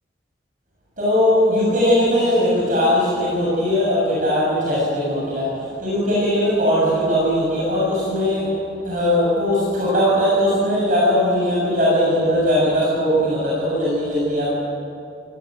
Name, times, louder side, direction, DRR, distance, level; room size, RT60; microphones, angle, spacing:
voice 1, 1.0-8.5 8.8-14.5, equal, 45° right, -6 dB, 7.9 m, -19 dB
28.5 x 20.0 x 7.9 m, 2.6 s
head